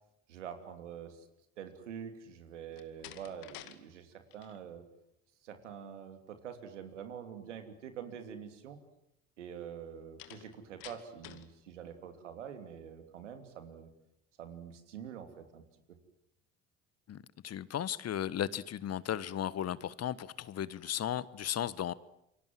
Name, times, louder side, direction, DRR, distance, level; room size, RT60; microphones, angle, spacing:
voice 1, 0.3-1.3 1.6-4.8 5.4-8.8 9.4-13.9 14.4-15.6, right 8 dB, 85° right, 7 dB, 3.1 m, -46 dB
Slam, 2.7-3.8 4.1-4.6 10.2-11.5, left 13 dB, 65° left, 2.3 m, -50 dB
voice 2, 17.1-21.9, left 10 dB, 45° left, 18 dB, 1.3 m, -35 dB
28.5 x 24.5 x 7.7 m, 0.82 s
hypercardioid pair, 60°, 35 cm